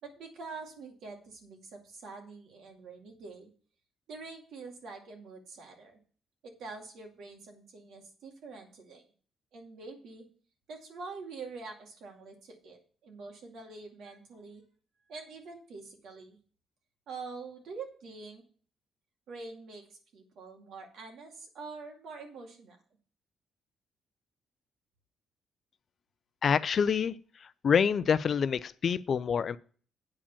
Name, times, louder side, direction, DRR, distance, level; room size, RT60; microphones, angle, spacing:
voice 1, 0.0-3.5 4.1-6.0 6.4-9.1 9.5-10.3 10.7-14.6 15.1-16.4 17.1-18.4 19.3-19.9 20.1-22.8, right 4 dB, 75° right, 2 dB, 2.3 m, -45 dB
voice 2, 26.4-27.1 27.6-29.6, left 7 dB, 50° left, 16 dB, 0.4 m, -26 dB
8.4 x 5.1 x 7.2 m, 0.43 s
cardioid pair, 90°, 0 cm